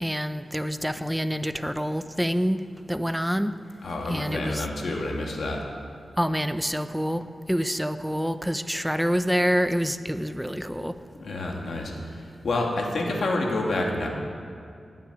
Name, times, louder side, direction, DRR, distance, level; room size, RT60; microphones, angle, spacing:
voice 1, 0.0-2.6 2.9-3.5 4.1-4.7 6.2-7.2 7.5-10.9, equal, ahead, 10 dB, 0.7 m, -26 dB
voice 2, 3.8-5.6 11.1-14.1, left 2 dB, 70° left, 0 dB, 2.4 m, -28 dB
15.0 x 9.0 x 9.7 m, 2.4 s
wide cardioid pair, 95°, 0 cm